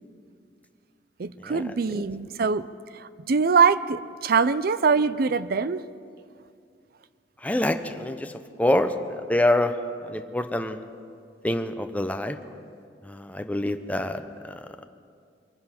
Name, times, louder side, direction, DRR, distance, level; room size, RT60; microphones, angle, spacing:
voice 1, 1.2-2.7 2.9-5.8, right 5 dB, 55° right, 16 dB, 0.5 m, -23 dB
voice 2, 7.4-8.3 8.6-9.7 10.1-10.8 11.4-12.4 13.1-14.2, left 1 dB, 10° left, 8 dB, 0.7 m, -25 dB
23.0 x 10.0 x 5.9 m, 2.3 s
head